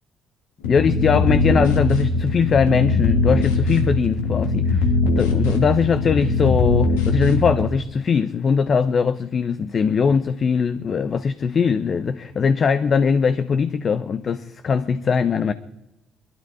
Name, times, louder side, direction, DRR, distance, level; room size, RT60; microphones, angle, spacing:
sound 1, 0.6-7.7, left 3 dB, 90° left, 2.1 m, -21 dB
voice 1, 0.6-15.5, left 6 dB, 50° left, 0.8 m, -21 dB
21.5 x 12.5 x 4.9 m
hypercardioid pair, 55°, 0 cm